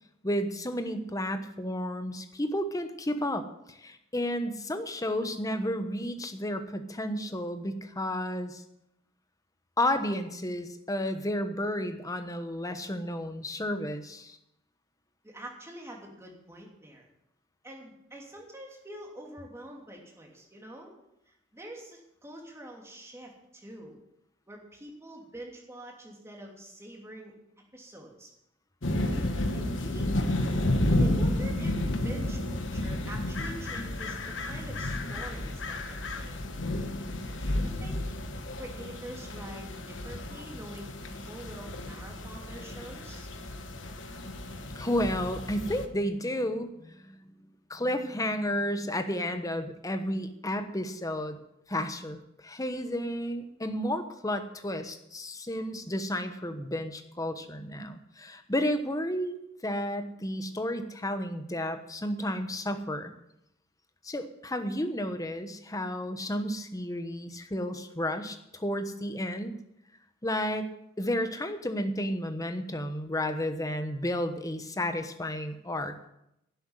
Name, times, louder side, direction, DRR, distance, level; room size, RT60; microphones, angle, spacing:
voice 1, 0.2-8.6 9.8-14.4 44.7-47.1 47.7-51.4 51.7-63.1 64.0-69.6 70.2-70.7 71.0-76.0, left 1 dB, 20° left, 8 dB, 1.1 m, -32 dB
voice 2, 15.2-17.1 17.6-20.9 21.3-24.0 24.5-27.3 27.7-28.3 29.0-30.1 30.9-36.4 37.3-38.1 38.6-43.3, right 1 dB, 15° right, 0 dB, 3.0 m, -46 dB
sound 1, 28.8-45.9, left 1 dB, 70° left, 1.3 m, -32 dB
11.5 x 8.0 x 9.8 m, 0.82 s
head